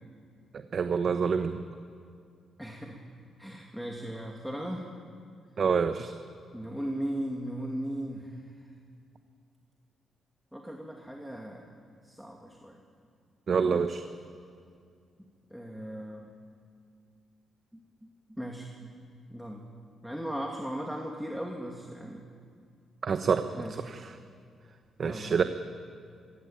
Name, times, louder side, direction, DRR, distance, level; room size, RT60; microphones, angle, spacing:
voice 1, 0.7-1.6 5.6-6.1 13.5-14.0 23.0-23.5 23.8-24.1 25.0-25.4, right 6 dB, 50° right, 9 dB, 0.9 m, -26 dB
voice 2, 2.6-3.0 3.4-4.9 6.5-8.4 10.5-11.7 12.0-12.8 15.5-16.3 17.7-18.1 18.4-18.7 19.3-19.6 20.0-22.2 23.5-23.8 25.0-25.4, equal, ahead, 0 dB, 2.4 m, -37 dB
22.0 x 16.5 x 8.9 m, 2.3 s
cardioid pair, 85°, 0 cm